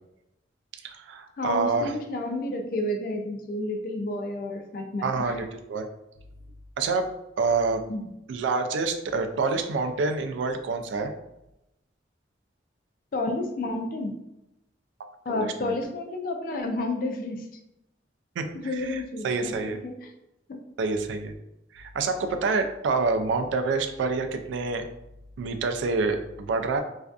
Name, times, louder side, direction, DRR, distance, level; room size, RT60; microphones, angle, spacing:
voice 1, 0.8-1.9 5.0-5.9 6.8-7.9 8.3-11.1 15.3-15.8 18.4-19.8 20.8-21.3 21.7-24.8 25.4-26.8, right 4 dB, 80° right, 7 dB, 0.3 m, -27 dB
voice 2, 1.4-5.3 7.9-8.0 13.1-14.2 15.3-17.5 18.6-20.1 20.5-20.6, left 2 dB, 50° left, 4 dB, 0.3 m, -31 dB
2.4 x 2.3 x 2.3 m, 0.88 s
head